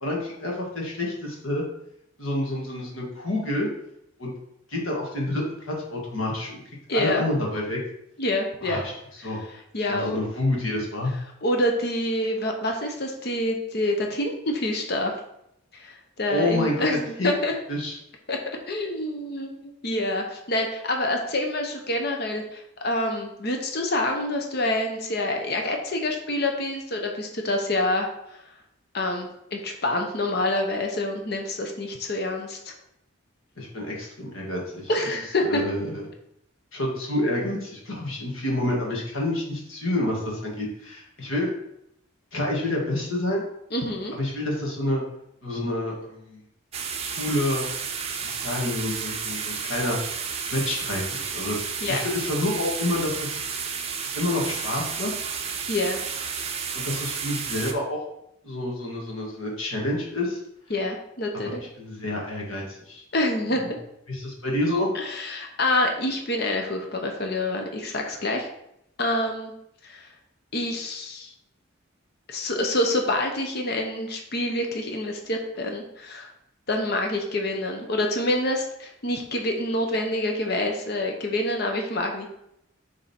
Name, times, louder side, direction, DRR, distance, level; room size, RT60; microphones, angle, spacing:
voice 1, 0.0-1.6 2.2-3.7 4.2-4.3 4.7-6.6 6.9-7.8 8.6-8.9 9.2-9.4 9.9-11.1 16.3-16.8 17.2-17.3 17.7-18.0 33.6-34.9 35.4-36.1 36.7-41.5 42.3-43.4 44.1-45.0 45.4-46.4 47.2-47.7 48.1-50.0 50.5-53.4 54.1-55.1 56.7-58.0 58.4-60.4 61.8-63.0 63.6-63.7 64.1-64.9, left 1 dB, 90° left, -2 dB, 1.9 m, -28 dB
voice 2, 6.9-7.2 8.2-8.8 9.7-10.2 11.4-15.1 15.7-17.5 18.3-18.4 18.7-28.4 28.9-32.7 34.9-35.6 43.7-44.1 51.8-52.1 55.7-56.0 60.7-61.6 63.1-63.6 64.9-68.5 69.0-69.5 69.8-70.1 70.5-71.3 72.3-76.3 76.7-82.3, left 1 dB, 50° left, 3 dB, 0.9 m, -27 dB
sound 1, 46.7-57.7, right 6 dB, 30° right, 0.6 m, -32 dB
6.9 x 3.8 x 4.4 m, 0.79 s
head